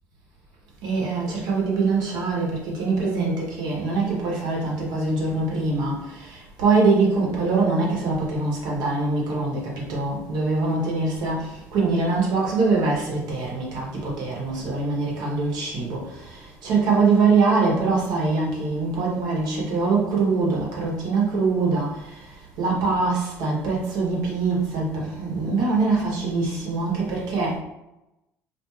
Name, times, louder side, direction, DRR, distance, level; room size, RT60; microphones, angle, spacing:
voice 1, 0.8-27.6, right 3 dB, 65° right, -3 dB, 0.8 m, -23 dB
2.4 x 2.3 x 3.0 m, 0.94 s
supercardioid pair, 80°, 8 cm